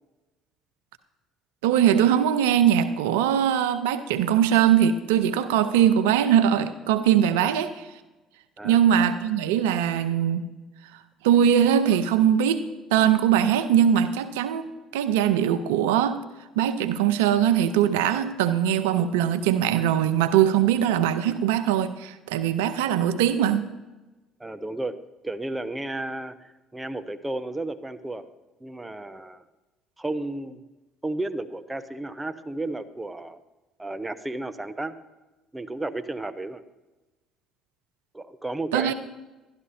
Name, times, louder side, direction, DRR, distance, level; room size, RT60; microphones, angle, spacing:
voice 1, 1.6-7.8 8.6-10.5 11.2-12.7 12.9-14.7 14.9-16.2 16.6-23.7 38.7-38.9, right 9 dB, 85° right, 11 dB, 0.6 m, -21 dB
voice 2, 24.4-25.0 25.2-28.2 28.6-29.4 30.0-30.6 31.0-33.4 33.8-34.9 35.5-36.6 38.1-38.9, right 2 dB, 15° right, 9 dB, 0.9 m, -33 dB
12.5 x 11.5 x 4.3 m, 1.1 s
hypercardioid pair, 65°, 0 cm